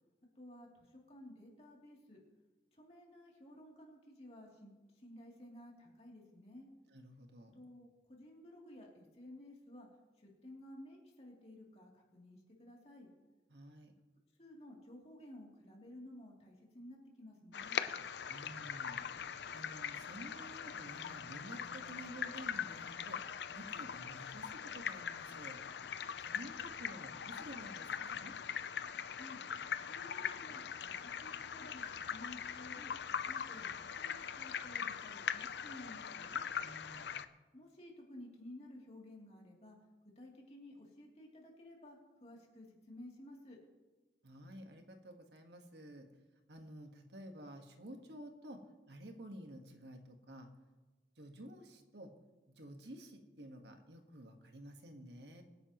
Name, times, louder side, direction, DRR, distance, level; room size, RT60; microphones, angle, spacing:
voice 1, 0.3-2.2 2.7-6.7 7.5-9.9 10.2-13.1 14.4-17.8 29.1-29.4 29.9-32.9 33.2-36.4 37.5-39.8 40.2-43.6, left 1 dB, 35° left, -2 dB, 3.0 m, -54 dB
voice 2, 6.9-7.6 13.5-14.0 18.3-19.1 19.5-23.2 23.5-25.6 26.2-28.3 36.6-37.2 44.2-46.1 46.5-48.6 48.9-50.5 51.2-52.1 52.5-55.4, right 1 dB, 80° right, 5 dB, 1.5 m, -52 dB
sound 1, 17.5-37.3, left 7 dB, 75° left, 0.5 m, -42 dB
24.0 x 10.0 x 3.0 m, 1.2 s
head